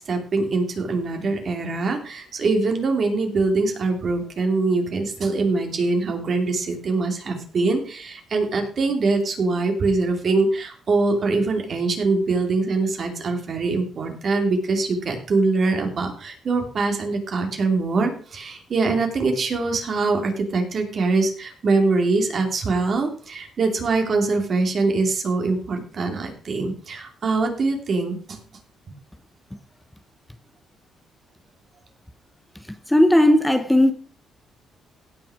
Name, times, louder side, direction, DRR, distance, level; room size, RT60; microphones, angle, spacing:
voice 1, 0.0-28.4, right 3 dB, 50° right, 3.0 m, -23 dB
voice 2, 32.7-33.9, left 1 dB, 5° left, 1.0 m, -16 dB
16.5 x 6.0 x 5.0 m
cardioid pair, 90°, 0 cm